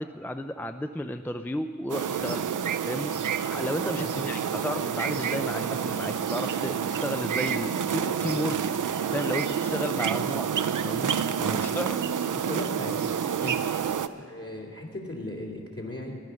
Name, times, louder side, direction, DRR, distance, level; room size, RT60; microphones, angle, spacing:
voice 1, 0.0-2.4 2.9-10.5 10.8-11.1 11.4-12.0 13.4-13.6, left 1 dB, 5° left, 8 dB, 0.4 m, -33 dB
sound 1, 1.9-14.1, right 7 dB, 85° right, 0.5 m, -28 dB
voice 2, 12.3-13.0 14.2-16.2, left 1 dB, 45° left, 0 dB, 2.6 m, -37 dB
15.0 x 11.0 x 6.3 m, 2.2 s
wide cardioid pair, 85°, 30 cm